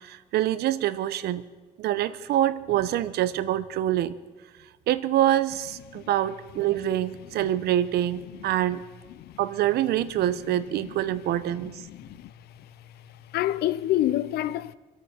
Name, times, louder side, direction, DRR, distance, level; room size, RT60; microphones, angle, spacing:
voice 1, 0.0-1.4 1.8-4.1 4.9-8.8 9.4-11.8, right 12 dB, 70° right, 0.9 m, -25 dB
voice 2, 10.8-11.2 11.6-12.7 13.3-14.7, left 13 dB, 70° left, 0.6 m, -29 dB
26.0 x 9.0 x 5.1 m
cardioid pair, 110°, 17 cm